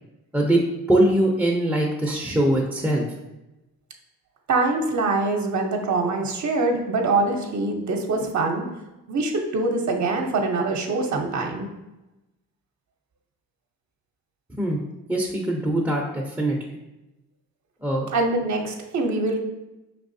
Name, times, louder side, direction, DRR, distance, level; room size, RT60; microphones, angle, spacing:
voice 1, 0.9-3.1 14.6-14.8 15.1-16.6 17.8-18.1, right 1 dB, 5° right, -2 dB, 0.5 m, -22 dB
voice 2, 4.5-8.7 9.1-11.7 18.1-19.4, right 3 dB, 55° right, 3 dB, 0.6 m, -24 dB
4.7 x 3.4 x 2.6 m, 0.98 s
cardioid pair, 90°, 35 cm